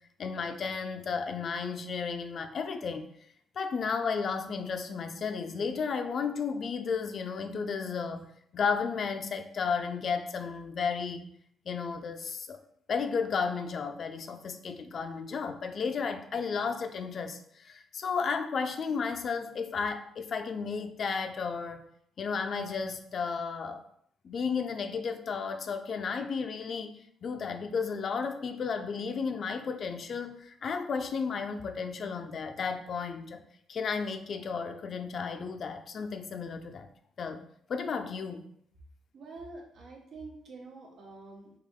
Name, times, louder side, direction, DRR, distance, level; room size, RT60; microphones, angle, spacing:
voice 1, 0.2-3.1 3.6-8.3 8.5-11.3 11.7-12.6 12.9-21.8 22.2-23.8 24.2-33.4 33.7-36.9 37.2-38.5, left 5 dB, 50° left, 7 dB, 0.5 m, -33 dB
voice 2, 39.1-41.5, right 3 dB, 65° right, -1 dB, 1.2 m, -46 dB
3.6 x 3.0 x 3.6 m, 0.68 s
cardioid pair, 90°, 0 cm